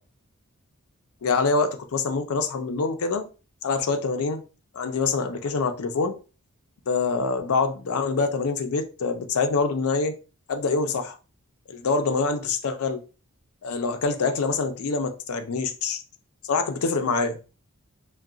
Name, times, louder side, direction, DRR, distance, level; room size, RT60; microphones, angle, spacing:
voice 1, 1.2-3.2 3.6-4.4 4.7-6.1 6.9-10.1 10.5-11.2 11.7-13.0 13.6-16.0 16.5-17.3, left 4 dB, 80° left, 0.5 m, -25 dB
2.3 x 2.2 x 3.7 m
head